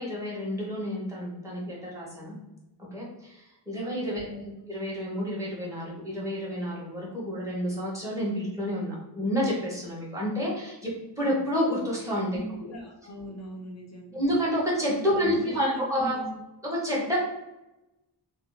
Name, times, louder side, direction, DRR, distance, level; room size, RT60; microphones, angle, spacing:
voice 1, 0.0-2.3 2.8-4.2 4.7-10.9 11.2-12.3 12.6-12.7 14.1-16.1 16.8-17.2, equal, 5° right, -6 dB, 1.4 m, -29 dB
voice 2, 4.1-4.6 12.3-14.2 15.0-16.4, equal, 40° left, 0 dB, 0.8 m, -40 dB
3.0 x 2.0 x 3.9 m, 0.96 s
wide cardioid pair, 90°, 42 cm